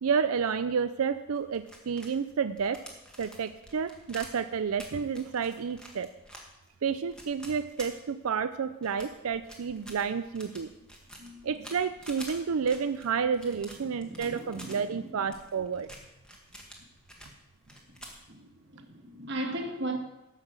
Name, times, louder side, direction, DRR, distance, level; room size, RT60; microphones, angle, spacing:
voice 1, 0.0-2.8 3.2-6.1 6.8-10.7 11.4-15.9, right 6 dB, 90° right, 0.5 m, -30 dB
sound 1, 1.4-8.4 8.8-14.8 15.2-17.4 17.6-18.2, equal, 5° left, 1.5 m, -48 dB
voice 2, 13.8-15.3 18.3-20.0, right 1 dB, 55° right, 1.5 m, -38 dB
12.5 x 5.8 x 7.3 m
head